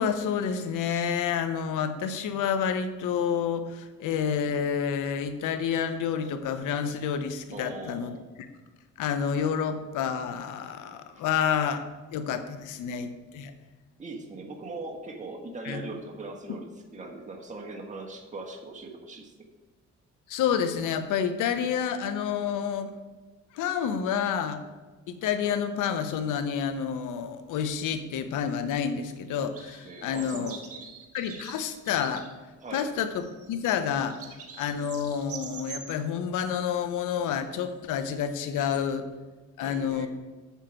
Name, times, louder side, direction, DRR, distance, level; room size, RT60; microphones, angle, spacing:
voice 1, 0.0-8.2 9.0-11.8 12.1-13.5 15.6-15.8 20.3-22.9 23.5-24.6 25.1-30.5 31.1-32.3 32.7-34.2 34.6-39.1 39.6-40.1, left 7 dB, 85° left, 9 dB, 0.9 m, -29 dB
voice 2, 7.5-8.3 14.0-19.3 29.8-30.9 32.6-32.9 39.6-40.1, right 2 dB, 25° right, 0 dB, 1.4 m, -40 dB
sound 1, 28.8-29.1 29.3-32.3 33.1-36.0 37.3-37.7 38.0-38.8, right 6 dB, 50° right, 1.6 m, -45 dB
7.3 x 7.2 x 5.7 m, 1.2 s
cardioid pair, 90°, 30 cm